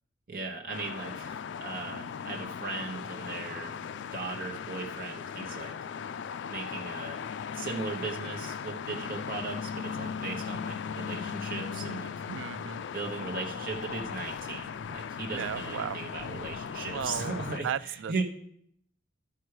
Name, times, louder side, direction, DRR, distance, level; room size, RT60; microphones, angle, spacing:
voice 1, 0.3-3.7 4.1-5.8 6.5-7.2 7.5-12.1 12.9-18.2, right 3 dB, 50° right, 1 dB, 1.0 m, -37 dB
sound 1, 0.7-17.6, left 7 dB, 75° left, 0.3 m, -38 dB
voice 2, 12.3-12.8 15.3-16.0 16.9-18.2, right 8 dB, 85° right, 16 dB, 0.4 m, -35 dB
13.0 x 4.7 x 4.8 m, 0.68 s
head